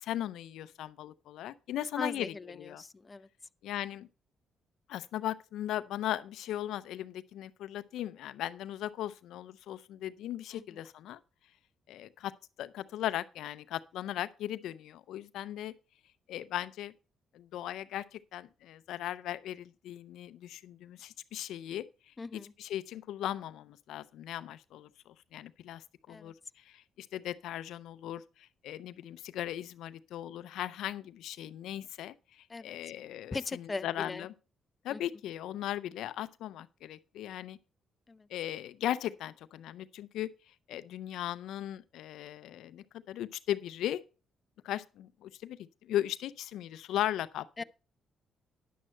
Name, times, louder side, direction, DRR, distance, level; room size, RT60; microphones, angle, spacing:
voice 1, 0.0-2.8 3.6-4.1 4.9-11.2 11.9-12.3 12.6-15.7 16.3-16.9 17.3-21.8 22.3-34.3 34.8-37.6 38.3-40.3 40.7-44.0 44.6-47.6, left 12 dB, 85° left, 0.5 m, -38 dB
voice 2, 2.0-3.3 10.5-10.6 22.2-22.5 26.1-26.3 32.5-32.8 33.3-34.3 34.9-35.0 38.1-38.3 47.6-47.7, left 3 dB, 25° left, 0.4 m, -39 dB
10.0 x 7.5 x 4.4 m
cardioid pair, 90°, 0 cm